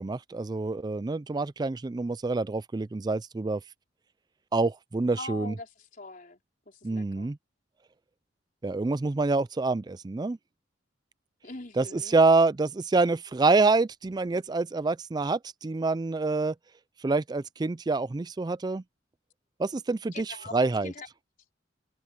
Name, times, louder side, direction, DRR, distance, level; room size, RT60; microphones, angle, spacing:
voice 1, 0.0-3.6 4.5-5.5 6.8-7.4 8.6-10.4 11.8-16.5 17.0-18.8 19.6-20.9, right 3 dB, 20° right, 0.3 m, -26 dB
voice 2, 5.1-6.4 6.7-7.3 11.4-12.2 20.1-21.1, left 3 dB, 45° left, 4.2 m, -43 dB
head